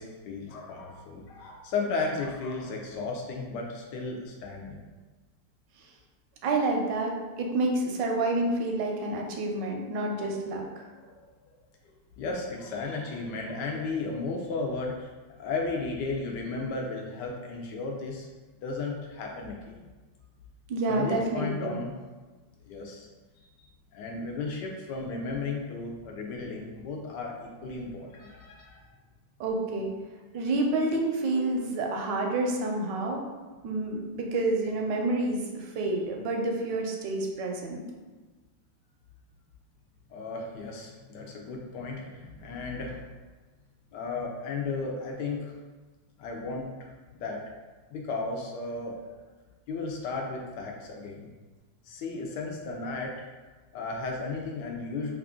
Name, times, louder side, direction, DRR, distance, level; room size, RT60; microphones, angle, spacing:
voice 1, 0.0-4.8 10.1-10.3 11.0-11.2 12.2-15.1 15.4-18.3 18.6-19.9 20.9-22.0 22.7-23.1 23.9-28.8 40.1-43.0 43.9-45.5 46.2-46.7 47.2-47.4 47.9-48.9 49.7-51.3 51.8-53.3 53.7-55.1, left 3 dB, 75° left, 0 dB, 1.1 m, -34 dB
voice 2, 6.4-10.9 20.7-21.8 29.4-29.9 30.3-33.2 33.6-37.8, right 2 dB, 80° right, 1 dB, 1.2 m, -29 dB
3.3 x 2.5 x 3.6 m, 1.3 s
omnidirectional pair, 2.0 m